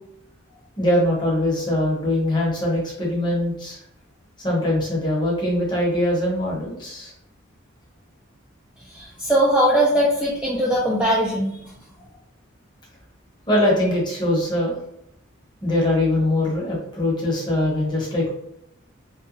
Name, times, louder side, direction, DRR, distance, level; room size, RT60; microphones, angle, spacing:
voice 1, 0.8-3.8 4.4-7.1 13.5-14.8 15.6-18.3, left 1 dB, 20° left, -4 dB, 0.8 m, -22 dB
voice 2, 8.8-11.6, right 1 dB, 5° right, -6 dB, 0.3 m, -20 dB
2.8 x 2.2 x 2.5 m, 0.80 s
head